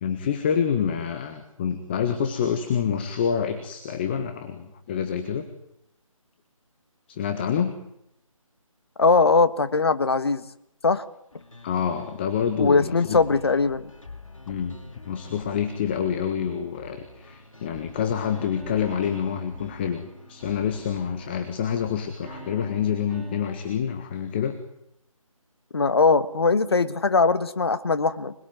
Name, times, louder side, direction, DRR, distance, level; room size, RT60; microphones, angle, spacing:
voice 1, 0.0-5.5 7.1-7.8 11.6-13.2 14.5-14.8 15.0-24.6, left 8 dB, 20° left, 8 dB, 1.5 m, -27 dB
voice 2, 9.0-10.4 10.8-11.0 12.6-13.9 25.7-28.3, left 4 dB, 45° left, 13 dB, 1.4 m, -20 dB
sound 1, 11.3-22.5, left 2 dB, 65° left, 4.5 m, -47 dB
sound 2, 18.1-21.3 22.2-23.6, right 1 dB, ahead, 3.9 m, -46 dB
26.5 x 21.0 x 9.5 m, 0.78 s
figure-of-eight pair, 155°, 18 cm